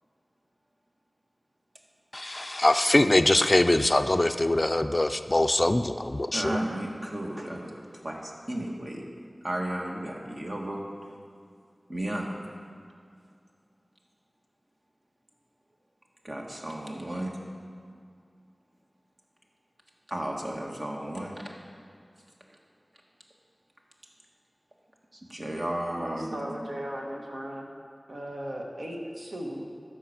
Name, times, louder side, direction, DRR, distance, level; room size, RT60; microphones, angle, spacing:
voice 1, 2.1-6.6, left 1 dB, 40° left, 9 dB, 0.4 m, -23 dB
voice 2, 6.3-9.1 9.4-10.9 11.9-12.3 16.2-17.4 20.1-21.4 25.3-26.3, right 1 dB, 50° right, -1 dB, 1.7 m, -33 dB
voice 3, 26.0-27.7 28.1-29.7, equal, 65° right, -1 dB, 1.6 m, -37 dB
12.5 x 5.0 x 7.2 m, 2.3 s
wide cardioid pair, 40°, 0 cm